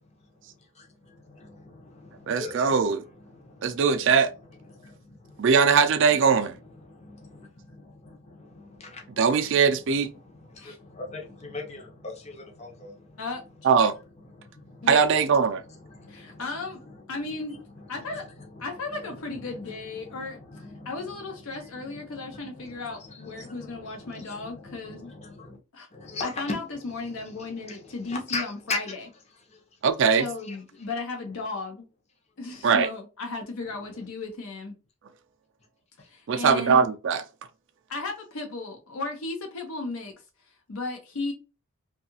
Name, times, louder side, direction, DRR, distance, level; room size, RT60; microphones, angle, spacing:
voice 1, 0.0-4.2 4.5-5.5 6.1-13.2 14.2-14.9 15.6-17.2 17.5-25.6 25.9-26.6 26.9-28.8 29.5-29.8 30.5-30.6 33.8-34.1 36.0-36.1, left 3 dB, 30° left, 0.6 m, -42 dB
voice 2, 2.3-3.0 3.6-4.3 5.4-6.5 9.2-10.1 13.6-13.9 14.9-15.6 29.8-30.2 32.6-32.9 36.3-37.2, right 6 dB, 55° right, 0.3 m, -21 dB
voice 3, 13.2-13.7 14.8-15.0 16.1-16.8 17.1-17.6 17.9-18.2 18.6-20.4 20.8-25.1 25.7-25.9 26.2-29.0 30.1-31.9 32.4-34.8 36.0-36.9 37.9-40.1 40.4-41.3, left 3 dB, 70° left, 0.6 m, -35 dB
2.7 x 2.3 x 2.7 m
head